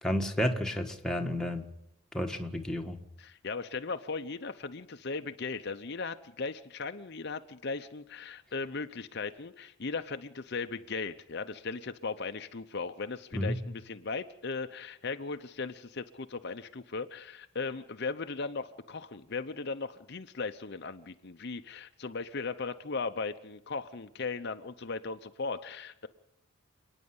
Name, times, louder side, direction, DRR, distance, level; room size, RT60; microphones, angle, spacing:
voice 1, 0.0-1.6 2.1-3.0 13.3-13.6, equal, 5° left, 2 dB, 1.5 m, -31 dB
voice 2, 3.2-26.1, left 4 dB, 50° left, 8 dB, 0.7 m, -37 dB
29.0 x 9.8 x 9.7 m, 0.78 s
head